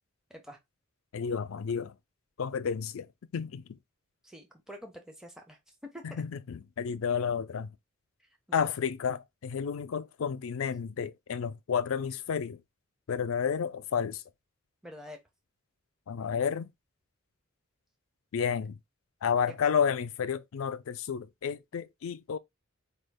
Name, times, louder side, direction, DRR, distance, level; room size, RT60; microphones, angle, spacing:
voice 1, 1.1-2.0 2.4-3.8 6.0-7.7 8.5-12.6 13.1-14.2 16.1-16.7 18.3-18.8 19.2-22.4, left 7 dB, 70° left, 0.4 m, -31 dB
voice 2, 4.2-5.6 5.9-6.2 8.5-8.7 14.8-15.2 19.5-19.6, equal, 5° right, 0.6 m, -46 dB
4.3 x 2.3 x 3.4 m
head